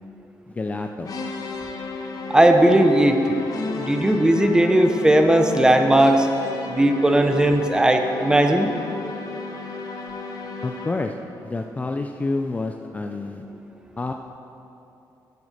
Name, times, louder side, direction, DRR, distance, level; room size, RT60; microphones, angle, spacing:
voice 1, 0.5-1.1 10.6-11.1 11.4-13.4 14.0-14.1, left 3 dB, 20° left, 5 dB, 0.4 m, -28 dB
sound 1, 1.0-11.2, left 4 dB, 55° left, 1.1 m, -33 dB
voice 2, 2.3-3.4 3.8-6.3 6.7-8.7, right 1 dB, 10° right, 5 dB, 0.7 m, -17 dB
9.6 x 7.8 x 6.6 m, 2.8 s
cardioid pair, 130°, 7 cm